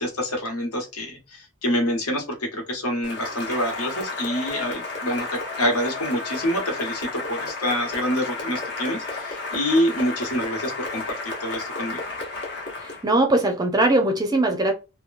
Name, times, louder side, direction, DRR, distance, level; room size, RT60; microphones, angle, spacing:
voice 1, 0.0-12.0, equal, 75° left, 2 dB, 1.2 m, -26 dB
Cheering / Applause, 3.0-13.1, left 3 dB, 50° left, 1.0 m, -32 dB
voice 2, 12.8-14.7, right 2 dB, 15° right, 4 dB, 0.5 m, -20 dB
2.8 x 2.2 x 2.5 m, 0.28 s
head